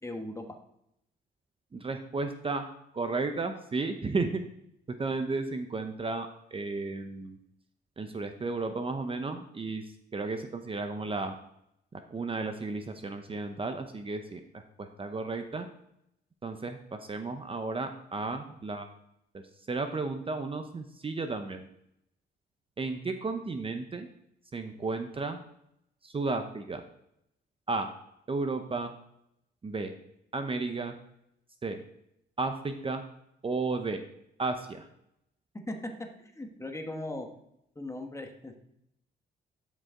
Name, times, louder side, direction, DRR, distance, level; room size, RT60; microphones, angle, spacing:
voice 1, 0.0-0.4 35.7-35.9 36.3-37.3 37.7-38.5, left 1 dB, 15° left, 4 dB, 1.3 m, -38 dB
voice 2, 1.7-2.6 2.9-4.4 5.0-7.4 8.0-9.8 10.1-11.3 12.1-15.7 16.4-18.9 19.3-19.4 19.7-21.7 22.8-24.1 24.5-25.4 26.0-26.8 27.7-27.9 28.3-28.9 29.6-29.9 30.3-30.9 31.6-31.8 32.4-33.0 33.4-34.0 34.4-34.9, right 3 dB, 25° right, 7 dB, 0.7 m, -33 dB
12.0 x 5.3 x 3.7 m, 0.77 s
cardioid pair, 90°, 20 cm